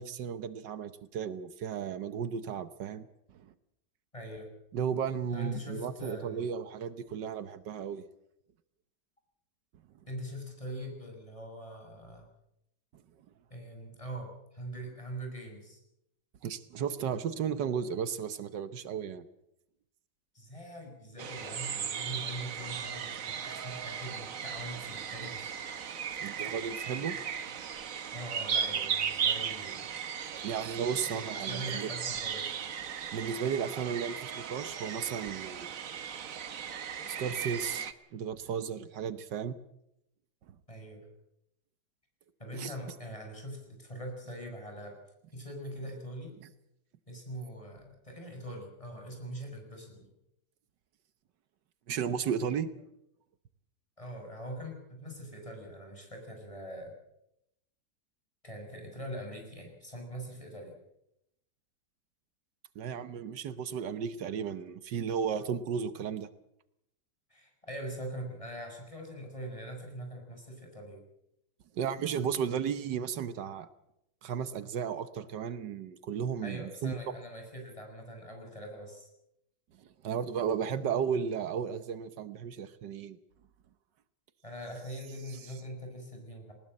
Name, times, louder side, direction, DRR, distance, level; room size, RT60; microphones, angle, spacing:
voice 1, 0.0-3.5 4.7-8.0 16.4-19.2 26.2-27.2 30.4-31.9 33.1-35.7 37.1-39.6 40.5-40.6 42.5-42.7 46.4-46.5 51.9-52.7 62.7-66.3 71.7-73.7 74.2-77.0 79.8-83.2, right 7 dB, 80° right, 13 dB, 1.6 m, -34 dB
voice 2, 4.1-4.5 5.3-6.4 10.1-12.3 13.5-15.8 20.3-25.6 28.1-30.0 31.0-32.6 40.7-41.1 42.4-45.0 45.3-46.4 47.1-50.1 54.0-56.9 58.4-60.7 67.3-71.0 76.4-79.1 84.4-86.5, right 1 dB, 20° left, 3 dB, 6.2 m, -42 dB
sound 1, 21.2-37.9, right 7 dB, 55° right, 1.4 m, -36 dB
20.0 x 19.5 x 7.7 m, 0.81 s
omnidirectional pair, 1.8 m